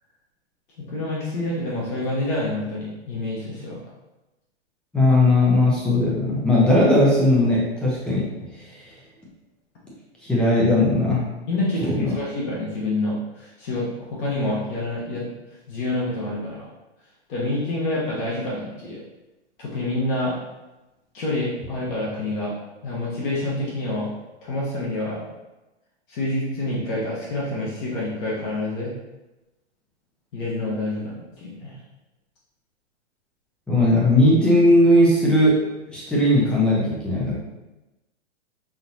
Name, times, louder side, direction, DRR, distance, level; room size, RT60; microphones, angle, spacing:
voice 1, 0.9-3.8 11.5-15.3 15.7-16.6 17.3-19.0 19.6-20.4 21.1-22.6 22.8-24.1 24.4-25.2 26.1-28.9 30.3-31.7, left 2 dB, 45° left, -6 dB, 1.2 m, -27 dB
voice 2, 4.9-8.2 10.2-11.2 11.8-12.1 33.7-35.6 35.9-37.3, left 1 dB, 5° left, -6 dB, 0.5 m, -18 dB
5.6 x 2.8 x 2.7 m, 1.0 s
hypercardioid pair, 150°, 35 cm